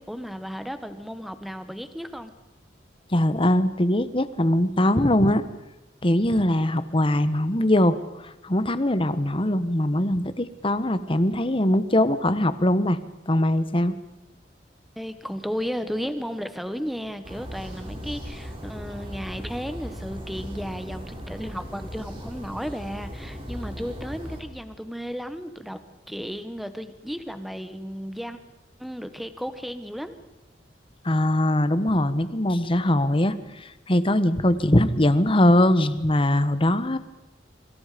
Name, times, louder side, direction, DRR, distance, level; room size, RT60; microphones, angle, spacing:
voice 1, 0.0-2.3 14.9-25.8 26.1-28.4 28.8-30.2, equal, ahead, 10 dB, 1.6 m, -34 dB
voice 2, 3.1-5.4 6.0-13.0 13.3-13.9 31.0-37.0, left 1 dB, 30° left, 13 dB, 1.3 m, -21 dB
sound 1, 17.2-24.4, equal, 30° right, 5.6 m, -37 dB
26.5 x 25.5 x 5.2 m, 0.99 s
head